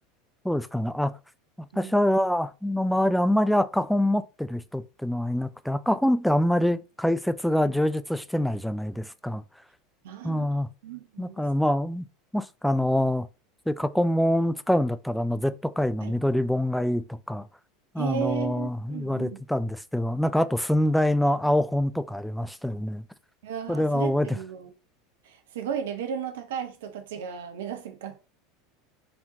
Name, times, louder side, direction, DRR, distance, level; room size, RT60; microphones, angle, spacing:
voice 1, 0.4-1.1 1.8-9.4 10.2-10.7 11.2-12.1 12.3-13.3 13.7-17.5 17.9-23.0 23.7-24.3, left 1 dB, ahead, 0.3 m, -25 dB
voice 2, 1.7-2.0 10.0-10.5 10.8-11.4 16.0-16.1 18.0-19.4 23.4-24.7 25.2-28.3, right 8 dB, 65° right, 0.8 m, -35 dB
4.4 x 3.5 x 2.7 m
figure-of-eight pair, 80°, 0 cm